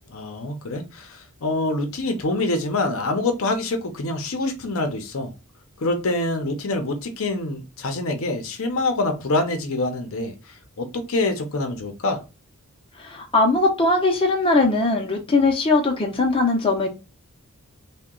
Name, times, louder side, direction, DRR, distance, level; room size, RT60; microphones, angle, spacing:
voice 1, 0.1-5.3 5.8-12.2, left 2 dB, 65° left, 0.6 m, -26 dB
voice 2, 13.0-16.9, left 3 dB, 25° left, 0.6 m, -20 dB
2.8 x 2.2 x 3.6 m
head